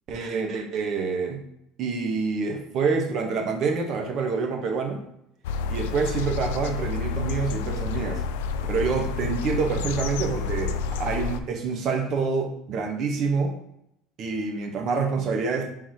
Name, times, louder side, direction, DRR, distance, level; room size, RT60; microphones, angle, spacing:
voice 1, 0.1-1.4 1.8-5.0 5.7-8.2 8.7-13.6 14.2-15.7, right 4 dB, 50° right, 3 dB, 1.0 m, -27 dB
sound 1, 5.4-11.4, left 4 dB, 90° left, 0.3 m, -29 dB
3.7 x 2.8 x 4.7 m, 0.78 s
supercardioid pair, 110°, 0 cm